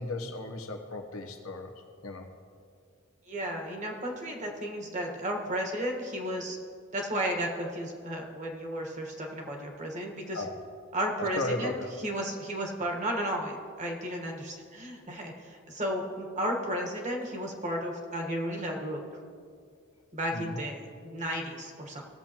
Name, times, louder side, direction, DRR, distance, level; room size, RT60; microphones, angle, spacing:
voice 1, 0.0-1.7 2.0-2.3 10.3-10.6 11.2-11.9 20.3-20.6, left 2 dB, 85° left, 3 dB, 1.1 m, -35 dB
voice 2, 3.3-6.6 6.9-10.4 10.9-19.0 20.1-22.0, equal, 35° right, 1 dB, 1.4 m, -33 dB
17.5 x 7.2 x 3.0 m, 2.2 s
head